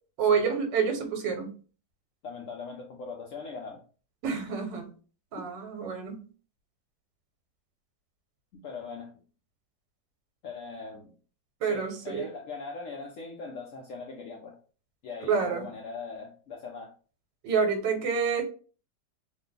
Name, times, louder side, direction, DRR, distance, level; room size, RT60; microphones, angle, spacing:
voice 1, 0.2-1.5 4.2-4.9 5.3-6.2 11.6-12.3 15.3-15.6 17.4-18.4, right 6 dB, 85° right, 1.5 m, -28 dB
voice 2, 2.2-3.8 5.4-5.5 8.6-9.1 10.4-11.1 11.6-14.6 15.0-16.9, left 4 dB, 70° left, 0.7 m, -40 dB
3.2 x 2.1 x 3.8 m
omnidirectional pair, 1.9 m